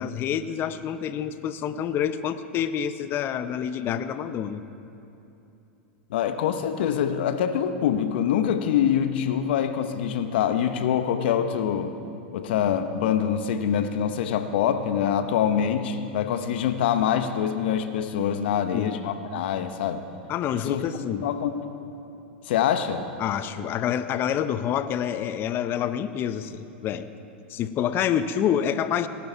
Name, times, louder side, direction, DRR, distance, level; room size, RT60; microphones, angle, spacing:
voice 1, 0.0-4.6 18.5-18.9 20.3-21.3 23.2-27.1 27.5-29.1, left 9 dB, 40° left, 12 dB, 0.7 m, -27 dB
voice 2, 6.1-11.9 12.3-20.0 20.7-20.8 21.2-21.6 22.5-23.0, left 9 dB, 65° left, 8 dB, 1.0 m, -25 dB
19.0 x 11.5 x 4.6 m, 2.8 s
hypercardioid pair, 100°, 6 cm